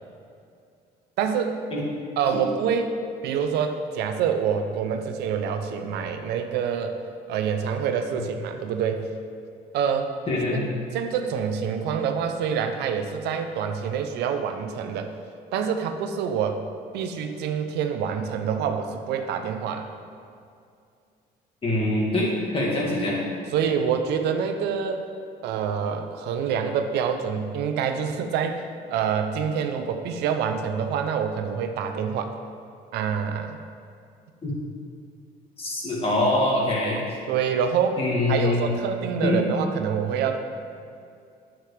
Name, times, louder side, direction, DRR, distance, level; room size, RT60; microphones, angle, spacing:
voice 1, 1.2-1.6 2.2-2.9 3.2-7.0 7.3-9.1 9.7-10.1 10.5-10.7 10.9-15.1 15.5-16.6 16.9-19.9 23.5-25.1 25.4-28.6 28.9-32.3 32.9-33.6 37.3-38.0 38.3-40.4, right 7 dB, 80° right, 7 dB, 0.6 m, -26 dB
voice 2, 10.3-10.7 21.6-23.2 34.4-34.5 35.6-37.0 38.0-38.7 39.2-39.5, left 2 dB, 35° left, -4 dB, 2.1 m, -24 dB
9.3 x 7.5 x 3.3 m, 2.4 s
cardioid pair, 110°, 17 cm